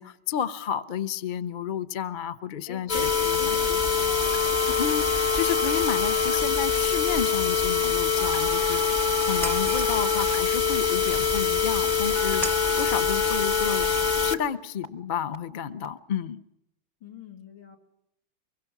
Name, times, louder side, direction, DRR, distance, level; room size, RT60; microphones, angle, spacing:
voice 1, 0.0-3.8 4.8-13.9 14.2-16.4, left 8 dB, 50° left, 11 dB, 0.6 m, -31 dB
voice 2, 2.7-4.3 4.6-4.9 17.0-17.8, left 7 dB, 65° left, 2 dB, 3.6 m, -42 dB
sound 1, 2.9-14.4 14.8-14.9 15.3-15.4 15.8-15.9, left 5 dB, 25° left, 1.1 m, -24 dB
Shatter, 9.4-10.2 12.4-13.1, right 1 dB, ahead, 0.9 m, -35 dB
24.5 x 23.0 x 6.0 m, 0.82 s
omnidirectional pair, 2.2 m